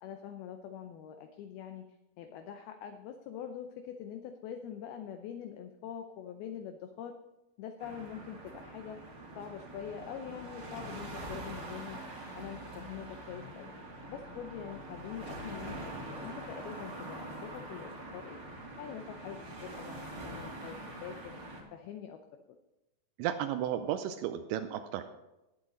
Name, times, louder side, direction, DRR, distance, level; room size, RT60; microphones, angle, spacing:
voice 1, 0.0-7.2 7.6-9.0 9.4-12.0 12.3-13.7 14.1-18.4 18.8-21.3 21.7-22.2, left 8 dB, 80° left, 7 dB, 2.2 m, -44 dB
sound 1, 7.8-21.6, right 1 dB, 35° right, 2.2 m, -44 dB
voice 2, 23.2-25.0, right 11 dB, 85° right, 8 dB, 2.9 m, -33 dB
18.5 x 8.1 x 3.8 m, 0.98 s
omnidirectional pair, 5.2 m